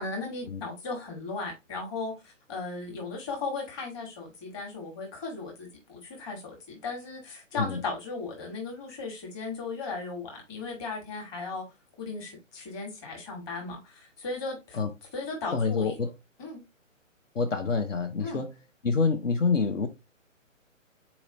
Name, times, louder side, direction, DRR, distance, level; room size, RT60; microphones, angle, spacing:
voice 1, 0.0-11.6 12.0-14.8 15.1-16.0 16.4-16.6 18.2-18.4, left 3 dB, 20° left, 1.4 m, -36 dB
voice 2, 15.5-16.1 17.3-18.6 18.8-19.9, left 4 dB, 65° left, 0.8 m, -27 dB
4.2 x 3.0 x 3.6 m
figure-of-eight pair, 135°, 40 cm